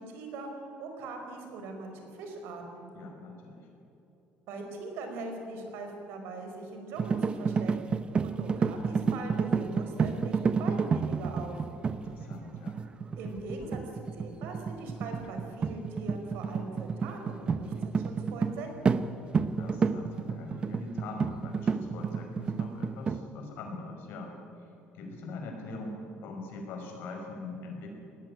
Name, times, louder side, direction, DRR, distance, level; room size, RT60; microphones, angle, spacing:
voice 1, 0.0-2.9 4.5-7.9 8.2-11.7 13.2-19.0, right 3 dB, 80° right, 4 dB, 5.0 m, -41 dB
voice 2, 2.9-3.7 11.9-12.8 19.6-24.3 24.6-24.7 24.9-27.9, left 2 dB, 70° left, 2 dB, 5.4 m, -42 dB
sound 1, 7.0-18.6 18.9-19.1 19.3-23.2, right 5 dB, 30° right, 0.7 m, -30 dB
19.0 x 15.5 x 9.8 m, 3.0 s
cardioid pair, 145°, 4 cm